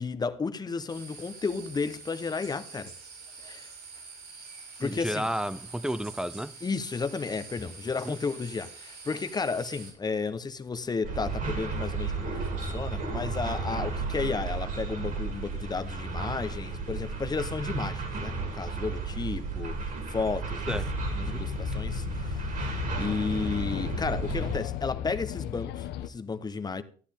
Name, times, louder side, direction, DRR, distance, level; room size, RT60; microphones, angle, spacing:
voice 1, 0.0-2.9 3.4-3.7 4.8-5.2 6.6-20.8 21.2-26.8, left 4 dB, 25° left, 0.9 m, -33 dB
sound 1, 0.9-9.9, right 4 dB, 80° right, 6.1 m, -46 dB
voice 2, 4.8-6.6 8.1-8.2 20.7-21.0 21.3-21.5, equal, 5° right, 0.5 m, -32 dB
sound 2, 11.0-24.6, right 4 dB, 55° right, 3.1 m, -33 dB
sound 3, 20.7-26.1, left 11 dB, 80° left, 0.8 m, -35 dB
14.0 x 9.7 x 3.6 m
cardioid pair, 110°, 17 cm